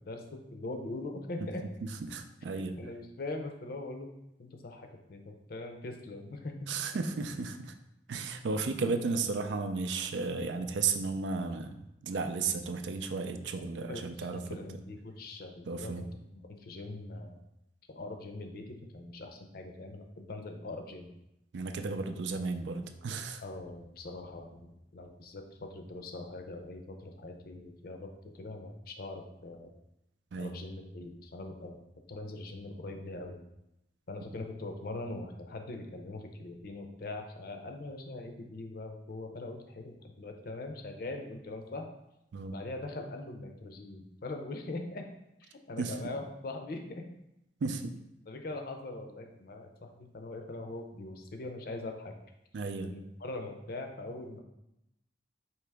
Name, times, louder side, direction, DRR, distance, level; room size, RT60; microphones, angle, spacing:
voice 1, 0.1-1.6 2.5-4.1 4.4-6.8 13.9-16.1 16.6-17.4 17.9-21.1 23.4-24.7 24.9-28.1 28.3-29.7 30.4-31.8 32.1-33.4 34.1-41.9 42.5-45.1 45.4-47.0 48.3-52.1 52.8-54.4, left 2 dB, 55° left, 4 dB, 0.5 m, -42 dB
voice 2, 2.1-2.8 6.7-7.7 8.1-11.7 12.0-14.4 15.7-16.0 21.5-23.4 30.3-30.5 42.3-42.5 45.8-45.9 47.6-47.9 52.5-52.9, right 4 dB, 80° right, 7 dB, 0.4 m, -34 dB
4.6 x 2.9 x 3.4 m, 0.85 s
head